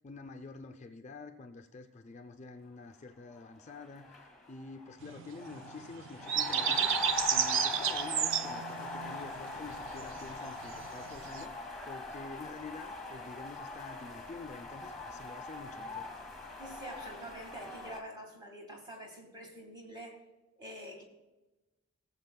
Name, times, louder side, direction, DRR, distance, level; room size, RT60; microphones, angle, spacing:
voice 1, 0.0-16.1, left 3 dB, 30° left, 6 dB, 0.4 m, -48 dB
sound 1, 3.4-3.5 3.7-18.0, left 3 dB, ahead, 1.9 m, -41 dB
sound 2, 5.0-11.4, right 9 dB, 60° right, 0.4 m, -33 dB
voice 2, 16.6-20.2 20.6-21.0, equal, 20° right, 1 dB, 1.7 m, -46 dB
18.0 x 7.3 x 2.2 m, 1.1 s
head